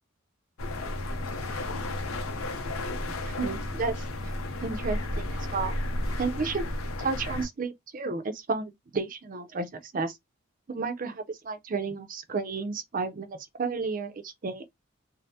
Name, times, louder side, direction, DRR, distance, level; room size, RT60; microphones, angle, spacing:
sound 1, 0.6-7.5, left 1 dB, 80° left, 0.7 m, -33 dB
voice 1, 3.1-4.1 4.6-5.7 6.2-6.7 7.0-10.2 10.7-14.7, right 4 dB, 40° right, 0.5 m, -32 dB
3.3 x 2.0 x 2.7 m
head